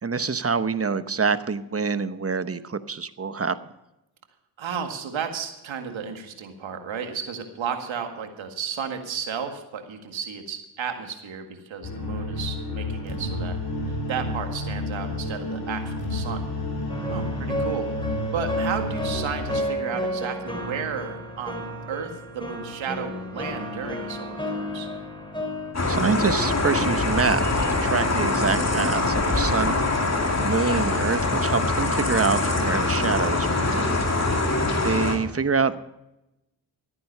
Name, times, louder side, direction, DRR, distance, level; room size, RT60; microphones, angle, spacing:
voice 1, 0.0-3.6 25.9-30.0 30.4-34.0 34.8-35.8, right 5 dB, 30° right, 13 dB, 0.9 m, -26 dB
voice 2, 4.6-16.5 17.1-24.9 34.3-34.8, right 7 dB, 90° right, 5 dB, 1.9 m, -33 dB
sound 1, 11.8-19.6, left 1 dB, 55° left, 4.2 m, -30 dB
sound 2, 16.9-25.7, equal, 10° left, 3.9 m, -32 dB
sound 3, 25.7-35.2, left 2 dB, 35° left, 2.5 m, -23 dB
14.5 x 9.5 x 5.5 m, 0.90 s
cardioid pair, 60°, 45 cm